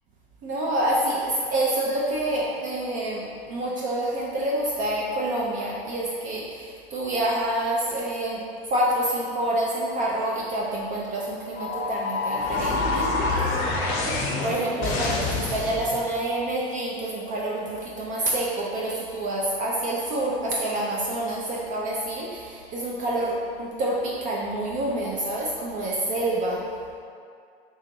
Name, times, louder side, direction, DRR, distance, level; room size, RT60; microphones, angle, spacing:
voice 1, 0.4-8.4 8.7-13.6 14.1-26.6, right 1 dB, 25° right, -4 dB, 0.4 m, -27 dB
sound 1, 11.6-16.1, left 3 dB, 40° left, 0.7 m, -27 dB
4.0 x 2.4 x 2.9 m, 2.3 s
figure-of-eight pair, 90°, 32 cm